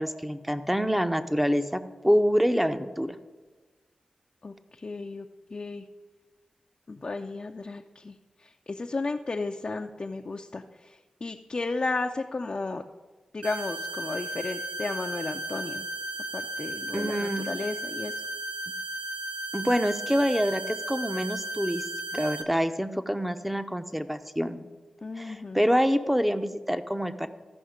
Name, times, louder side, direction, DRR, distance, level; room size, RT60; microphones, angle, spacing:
voice 1, 0.0-3.2 16.9-17.5 19.5-21.8 22.1-24.7 25.2-27.3, equal, 5° right, 10 dB, 0.7 m, -26 dB
voice 2, 4.4-5.9 6.9-12.8 13.3-15.9 16.3-18.2 25.0-25.6, left 3 dB, 45° left, 3 dB, 0.5 m, -34 dB
sound 1, 13.4-22.4, right 1 dB, 85° right, 0.7 m, -35 dB
14.0 x 5.5 x 5.0 m, 1.3 s
cardioid pair, 45°, 2 cm